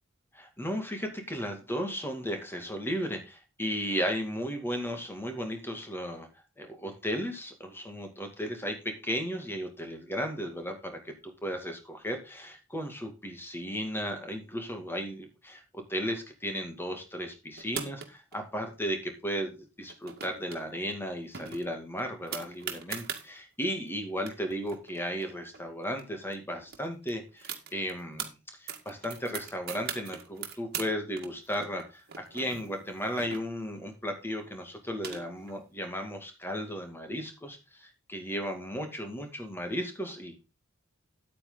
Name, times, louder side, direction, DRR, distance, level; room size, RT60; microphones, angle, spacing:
voice 1, 0.3-6.3 6.6-40.4, equal, 10° left, 5 dB, 2.2 m, -35 dB
sound 1, 17.6-18.4 19.8-20.6 20.9-21.0 21.3-23.2 23.9-24.0 24.2-26.0 26.3-26.4 26.7-28.3 28.7-30.9 31.2-33.8 34.6-35.6, right 7 dB, 50° right, 2.0 m, -40 dB
9.4 x 8.9 x 3.9 m, 0.29 s
head